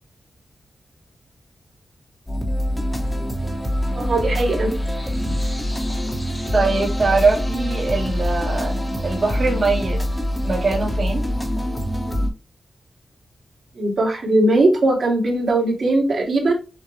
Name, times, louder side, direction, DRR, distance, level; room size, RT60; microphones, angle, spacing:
sound 1, 2.3-12.3, equal, 10° left, 1.0 m, -24 dB
voice 1, 3.9-4.7 13.7-16.5, right 2 dB, 60° right, -2 dB, 2.0 m, -19 dB
voice 2, 6.5-8.7 9.0-10.0 10.4-11.2, right 3 dB, 40° right, -5 dB, 1.3 m, -21 dB
6.4 x 2.3 x 3.1 m, 0.31 s
wide cardioid pair, 150°, 0 cm